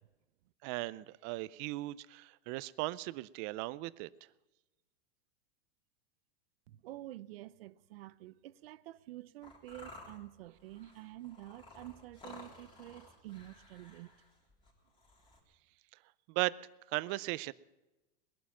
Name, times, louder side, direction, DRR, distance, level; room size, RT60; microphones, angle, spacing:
voice 1, 0.6-4.1 16.3-16.5 16.9-17.5, right 20 dB, 35° right, 0.5 m, -37 dB
voice 2, 6.7-14.1, right 16 dB, 70° right, 0.7 m, -49 dB
sound 1, 9.4-15.4, left 2 dB, 15° left, 3.6 m, -55 dB
20.5 x 11.5 x 6.0 m
supercardioid pair, 150°, 31 cm